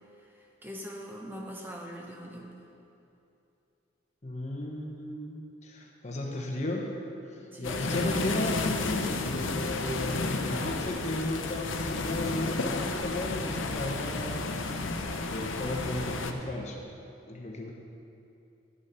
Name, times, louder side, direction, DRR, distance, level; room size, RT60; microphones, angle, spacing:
voice 1, 0.1-2.5 7.4-7.8, equal, 10° right, -1 dB, 0.8 m, -43 dB
voice 2, 4.2-6.9 7.2-14.6 15.3-16.9 17.3-17.7, left 1 dB, 35° left, 0 dB, 0.9 m, -35 dB
sound 1, 7.6-16.3, left 3 dB, 80° left, 0.7 m, -32 dB
11.0 x 6.3 x 5.6 m, 2.7 s
head